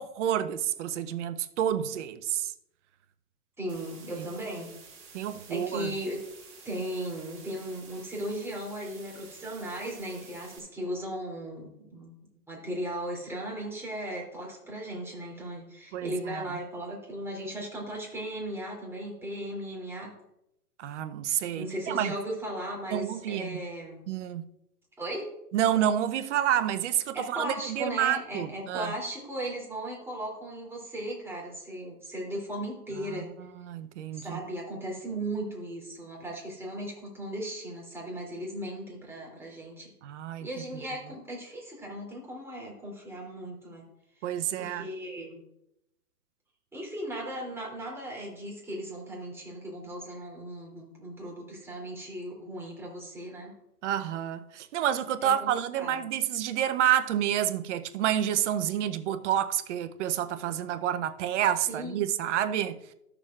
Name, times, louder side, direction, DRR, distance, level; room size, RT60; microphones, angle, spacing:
voice 1, 0.0-2.5 4.2-4.3 5.1-5.9 15.9-16.5 20.8-22.1 22.9-23.6 24.1-24.4 25.5-28.9 33.1-34.4 40.0-40.5 44.2-44.9 53.8-62.8, right 10 dB, 50° right, 0.7 m, -29 dB
voice 2, 3.6-4.7 5.5-6.3 6.6-12.1 12.5-20.1 21.5-24.0 25.0-25.3 27.1-33.3 34.1-39.9 40.4-43.8 44.6-45.4 46.7-53.5 55.2-55.5 55.8-56.1 61.7-62.1, right 1 dB, 5° right, 2.9 m, -37 dB
sound 1, 3.7-10.6, right 5 dB, 35° right, 2.7 m, -51 dB
13.5 x 6.9 x 2.4 m
hypercardioid pair, 120°, 46 cm